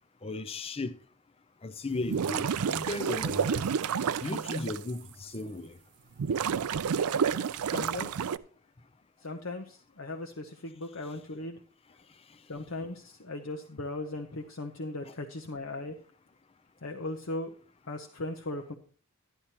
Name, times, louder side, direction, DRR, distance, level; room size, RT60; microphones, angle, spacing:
voice 1, 0.2-0.9 1.6-3.6 4.2-5.7, left 2 dB, 25° left, 0.5 m, -36 dB
sound 1, 2.0-4.8 5.3-5.4 6.2-8.4, right 7 dB, 85° right, 0.4 m, -30 dB
voice 2, 7.7-8.1 9.2-11.6 12.5-16.0 16.8-17.6 17.9-18.7, left 2 dB, 65° left, 0.8 m, -38 dB
11.5 x 11.0 x 2.9 m
head